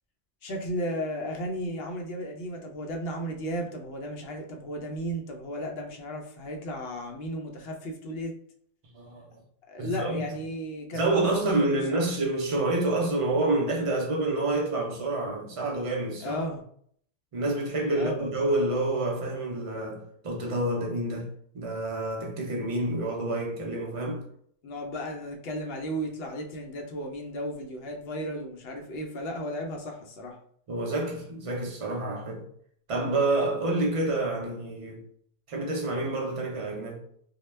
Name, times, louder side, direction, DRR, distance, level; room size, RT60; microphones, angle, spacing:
voice 1, 0.4-8.4 9.7-12.1 16.2-16.6 18.0-18.2 24.6-30.4, equal, 65° left, 0.7 m, -34 dB
voice 2, 8.9-9.4 9.8-10.3 10.9-16.4 17.3-24.3 30.7-32.4 32.9-35.0 35.5-37.0, right 2 dB, 50° right, 0.4 m, -28 dB
2.1 x 2.1 x 3.1 m
omnidirectional pair, 1.2 m